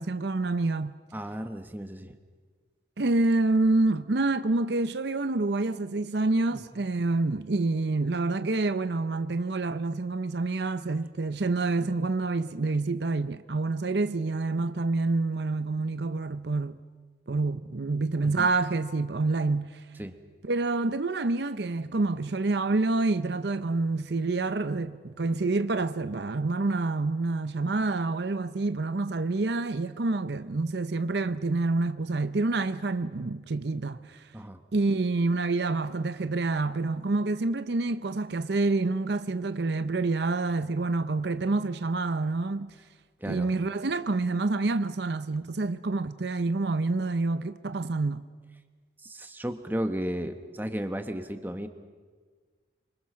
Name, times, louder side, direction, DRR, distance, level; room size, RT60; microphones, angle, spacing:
voice 1, 0.0-1.0 3.0-16.8 17.3-19.9 20.4-34.3 34.7-42.7 43.3-48.3, right 3 dB, 60° right, 0.7 m, -27 dB
voice 2, 1.1-2.2 6.5-6.9 18.2-18.5 20.0-20.2 34.3-34.6 43.2-43.5 49.0-51.7, equal, 10° right, 1.3 m, -34 dB
27.0 x 25.0 x 6.3 m
head